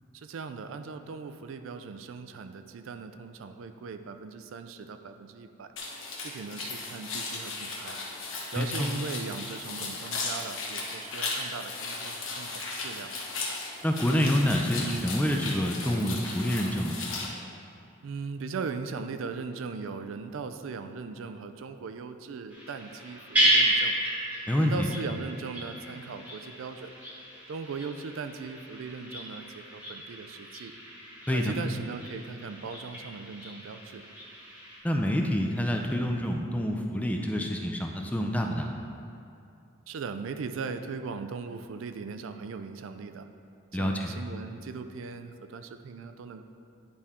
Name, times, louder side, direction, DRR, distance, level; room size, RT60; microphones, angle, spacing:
voice 1, 0.1-5.7 6.2-8.0 8.5-13.1 18.0-24.0 24.6-26.9 27.5-30.7 31.3-34.0 39.9-43.3 43.7-46.4, right 5 dB, 80° right, 9 dB, 0.4 m, -39 dB
sound 1, 5.8-17.3, left 3 dB, 85° left, 1.1 m, -36 dB
voice 2, 8.6-8.9 13.8-17.0 24.5-24.9 31.3-31.5 34.8-38.7 43.7-44.1, equal, 5° left, 2 dB, 0.4 m, -27 dB
sound 2, 22.5-34.8, right 1 dB, 10° right, 1.1 m, -32 dB
9.9 x 4.2 x 3.6 m, 2.5 s
head